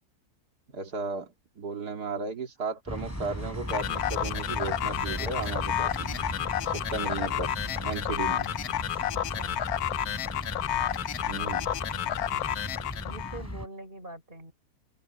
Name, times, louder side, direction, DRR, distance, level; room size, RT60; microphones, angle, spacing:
voice 1, 0.7-6.2 6.6-7.5 7.8-8.5 11.3-11.7, right 4 dB, 85° right, 2.8 m, -35 dB
sound 1, 2.9-13.7, left 1 dB, 10° left, 3.2 m, -37 dB
sound 2, 2.9-8.0, right 1 dB, 15° right, 5.3 m, -48 dB
sound 3, 3.7-13.4, left 11 dB, 75° left, 1.2 m, -31 dB
voice 2, 6.7-7.3 8.0-8.1 9.1-9.6 13.0-14.5, right 1 dB, 35° right, 5.7 m, -45 dB
omnidirectional pair, 1.6 m